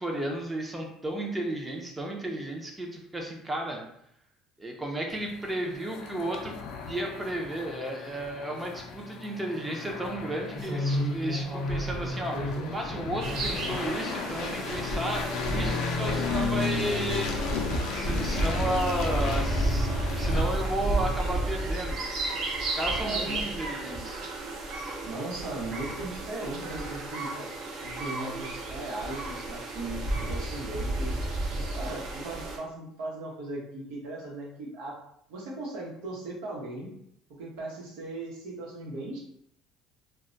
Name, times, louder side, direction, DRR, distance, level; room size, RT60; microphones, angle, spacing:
voice 1, 0.0-3.8 4.6-6.6 6.9-17.6 17.9-19.9 20.2-22.0 22.7-24.2, right 1 dB, 15° right, 1 dB, 0.6 m, -33 dB
sound 1, 5.1-20.4, left 4 dB, 70° left, 0.4 m, -34 dB
sound 2, 10.5-13.9 14.3-18.5 18.8-19.2 19.7-20.1 20.4-20.7 21.3-21.4 21.7-21.8 23.0-23.1 23.8-24.6 25.8-26.0 26.3-26.4 26.8-26.9, equal, 30° right, 1.0 m, -35 dB
sound 3, 13.2-32.6, right 2 dB, 55° right, 0.7 m, -32 dB
voice 2, 23.0-23.5 25.0-27.4 27.8-31.1 31.7-35.0 35.3-36.9 37.3-39.2, right 2 dB, 80° right, -3 dB, 0.9 m, -38 dB
2.2 x 2.1 x 3.8 m, 0.74 s
cardioid pair, 125°, 0 cm